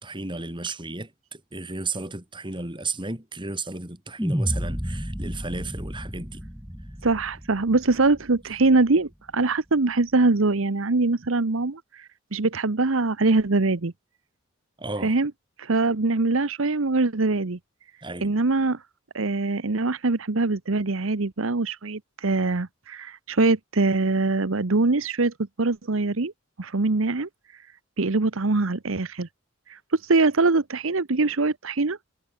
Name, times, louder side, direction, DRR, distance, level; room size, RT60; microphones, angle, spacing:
voice 1, 0.0-6.4 14.8-15.1 18.0-18.3, right 3 dB, 25° right, 3.7 m, -33 dB
sound 1, 4.2-8.5, equal, 5° right, 4.1 m, -31 dB
voice 2, 7.0-13.9 15.0-15.3 15.6-17.6 18.2-18.8 19.1-26.3 26.6-27.3 28.0-29.3 29.7-32.0, right 3 dB, 70° right, 1.0 m, -23 dB
head